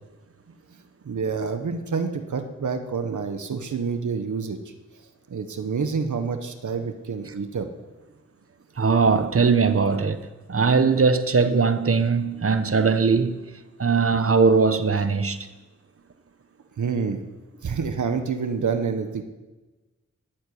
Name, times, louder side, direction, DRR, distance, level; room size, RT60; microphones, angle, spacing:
voice 1, 1.0-4.6 5.3-7.7 16.8-17.2 17.6-19.2, right 5 dB, 85° right, 1.2 m, -27 dB
voice 2, 8.8-13.4 13.8-15.4, right 5 dB, 50° right, 1.1 m, -20 dB
13.5 x 7.9 x 9.5 m
cardioid pair, 60°, 29 cm